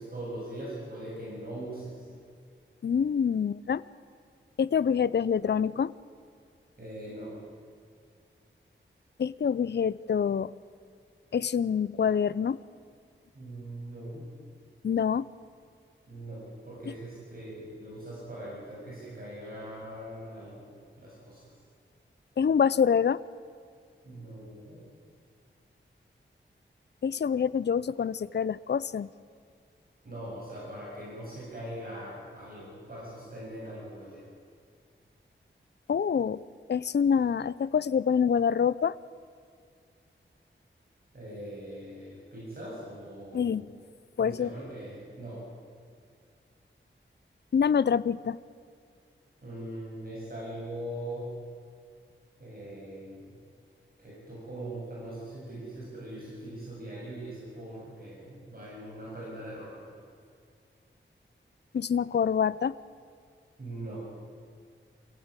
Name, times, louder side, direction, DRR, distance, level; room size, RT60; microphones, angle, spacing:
voice 1, 0.0-2.1 6.8-7.4 13.3-14.3 16.1-20.7 21.0-21.4 24.0-24.8 30.0-34.2 41.1-43.6 44.2-45.5 49.4-51.3 52.4-53.4 54.0-59.9 63.6-64.1, right 1 dB, 45° right, -6 dB, 7.7 m, -41 dB
voice 2, 2.8-3.8 4.6-5.9 9.2-10.5 11.3-12.6 14.8-15.3 22.4-23.2 27.0-29.1 35.9-36.4 36.7-39.0 43.3-43.7 44.2-44.5 47.5-48.4 61.7-62.8, left 7 dB, 55° left, 18 dB, 0.5 m, -26 dB
24.0 x 15.5 x 9.0 m, 2.2 s
wide cardioid pair, 105°, 21 cm